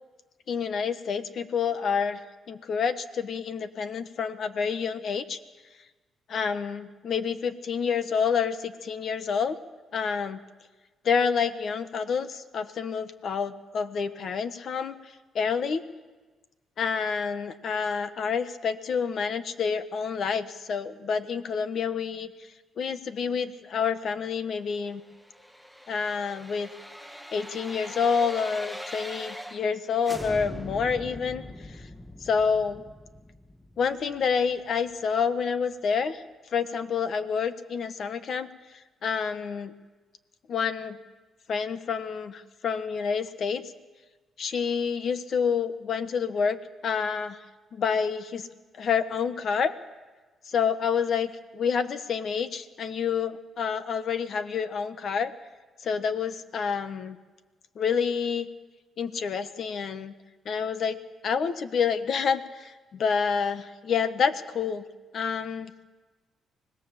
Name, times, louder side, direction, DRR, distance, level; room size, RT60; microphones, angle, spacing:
voice 1, 0.5-2.2 2.5-5.4 6.3-9.6 9.9-10.4 11.0-14.9 15.3-15.8 16.8-22.3 22.8-25.0 25.9-26.7 27.3-31.4 31.7-31.8 32.2-32.8 33.8-36.2 36.5-38.5 39.0-39.7 40.5-41.0 41.5-43.6 44.4-46.6 46.8-47.4 47.7-48.5 48.8-49.7 50.4-55.3 55.8-57.2 57.7-58.5 59.0-60.1 60.4-64.8 65.1-65.7, left 6 dB, 60° left, 11 dB, 1.4 m, -28 dB
sound 1, 25.0-29.8 30.0-34.9 35.3-35.4, equal, 5° left, 1.3 m, -42 dB
25.0 x 19.0 x 7.5 m, 1.3 s
cardioid pair, 90°, 0 cm